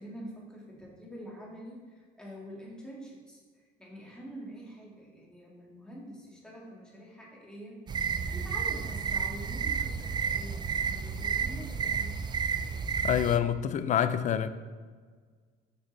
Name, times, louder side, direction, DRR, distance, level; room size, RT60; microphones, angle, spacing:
voice 1, 0.0-12.1, equal, 5° left, 1.9 m, -46 dB
sound 1, 7.9-13.4, right 6 dB, 25° right, 0.3 m, -31 dB
voice 2, 13.0-14.5, left 9 dB, 45° left, 0.4 m, -26 dB
6.8 x 6.0 x 3.3 m
cardioid pair, 110°, 17 cm